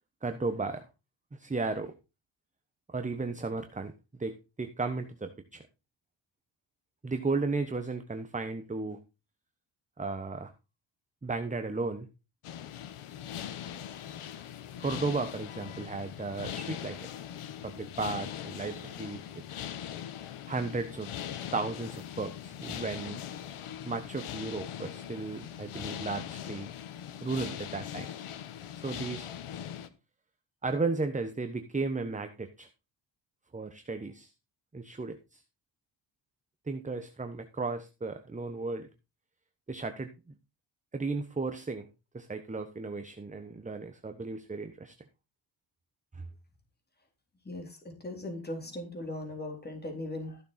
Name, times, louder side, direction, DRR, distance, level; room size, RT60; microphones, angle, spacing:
voice 1, 0.2-0.9 1.3-1.9 2.9-3.9 4.2-5.6 7.0-9.0 10.0-10.5 11.2-12.1 14.8-17.0 17.6-19.2 20.5-21.1 21.5-23.2 23.8-26.7 27.2-28.1 28.8-29.3 30.6-32.7 33.5-34.3 34.7-35.4 36.7-38.9 39.7-40.1 40.9-41.9 42.1-44.9 46.1-46.2, right 3 dB, 15° right, 8 dB, 1.0 m, -34 dB
sound 1, 12.4-29.9, left 10 dB, 80° left, 1.4 m, -41 dB
voice 2, 47.5-50.4, left 1 dB, 20° left, 3 dB, 3.7 m, -39 dB
14.5 x 6.8 x 4.2 m, 0.29 s
cardioid pair, 110°, 50 cm